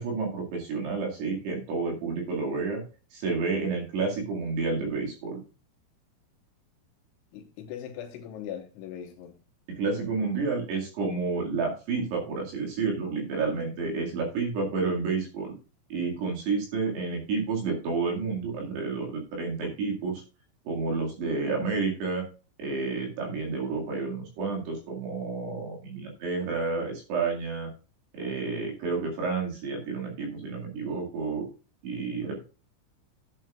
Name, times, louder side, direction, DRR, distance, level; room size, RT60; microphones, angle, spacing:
voice 1, 0.0-2.8 3.1-5.4 9.7-15.5 15.9-20.2 20.7-22.2 22.6-27.7 28.1-31.5 31.8-32.4, right 4 dB, 60° right, 4.0 m, -30 dB
voice 2, 7.3-9.3, left 9 dB, 75° left, 3.5 m, -40 dB
12.0 x 9.0 x 2.4 m
omnidirectional pair, 5.8 m